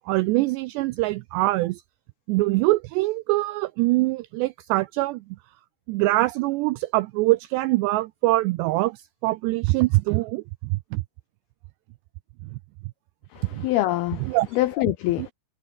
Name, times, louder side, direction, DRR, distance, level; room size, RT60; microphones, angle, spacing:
voice 1, 0.1-1.8 2.3-5.2 5.9-11.0 13.5-13.6 14.3-14.5, right 20 dB, 90° right, 2.5 m, -23 dB
voice 2, 13.3-15.3, left 16 dB, 90° left, 2.2 m, -25 dB
omnidirectional pair, 5.5 m